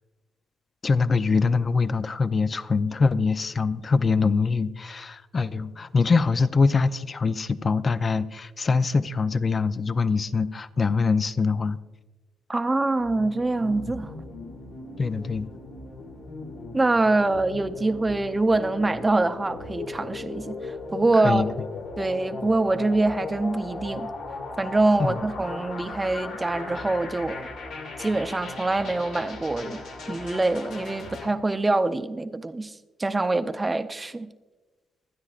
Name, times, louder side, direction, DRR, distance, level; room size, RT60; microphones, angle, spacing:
voice 1, 0.8-11.8 15.0-15.5 21.2-21.5 25.0-25.2 26.8-26.9, left 4 dB, 35° left, 0.5 m, -23 dB
voice 2, 12.5-14.1 16.7-21.4 22.0-24.1 24.6-27.5 28.0-29.8 30.1-32.7 33.0-34.3, right 2 dB, 20° right, 0.6 m, -24 dB
sound 1, 13.0-31.3, left 3 dB, 85° left, 2.2 m, -38 dB
24.5 x 9.7 x 2.4 m
cardioid pair, 90°, 0 cm